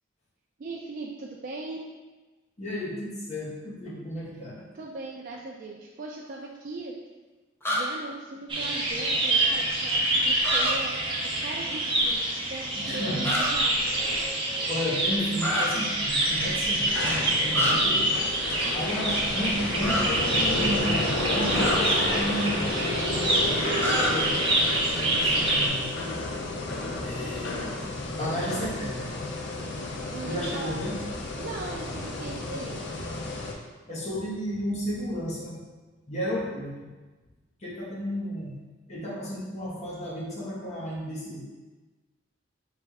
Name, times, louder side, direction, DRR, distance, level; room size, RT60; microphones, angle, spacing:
voice 1, 0.6-1.9 4.7-6.9 7.7-10.9 11.4-13.8 30.1-30.7 31.4-32.7, right 3 dB, 45° right, -2 dB, 0.4 m, -38 dB
voice 2, 2.6-4.5 12.8-13.3 14.7-17.0 17.4-18.2 18.7-24.4 24.8-26.1 27.0-27.8 28.1-29.1 30.2-31.0 33.9-35.5 36.1-36.9 37.6-38.5 38.9-41.4, equal, 35° left, -6 dB, 1.2 m, -33 dB
sound 1, 7.6-7.8 10.4-10.7 13.2-13.5 15.4-15.7 17.5-17.7 19.8-20.0 21.5-21.8 23.8-24.1, equal, 10° left, 0.6 m, -27 dB
sound 2, 8.5-25.7, right 1 dB, 30° right, 0.8 m, -26 dB
sound 3, 16.2-33.5, left 2 dB, 60° left, 0.6 m, -32 dB
3.4 x 3.3 x 4.6 m, 1.3 s
head